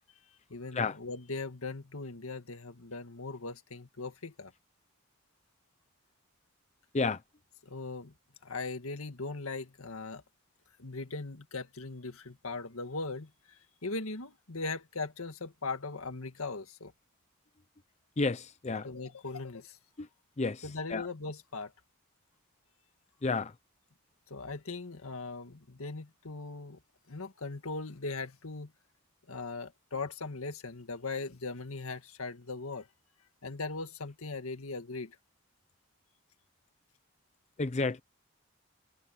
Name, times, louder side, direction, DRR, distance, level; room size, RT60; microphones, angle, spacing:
voice 1, 0.5-4.5 7.6-8.1 8.4-10.2 10.8-16.9 18.8-19.8 20.6-21.7 24.3-26.8 27.1-28.7 29.3-32.9 33.4-35.2, left 3 dB, 80° left, 1.8 m, -39 dB
voice 2, 18.2-18.9 20.0-20.1 20.4-21.1 23.2-23.5 37.6-38.0, left 3 dB, 30° left, 0.6 m, -31 dB
head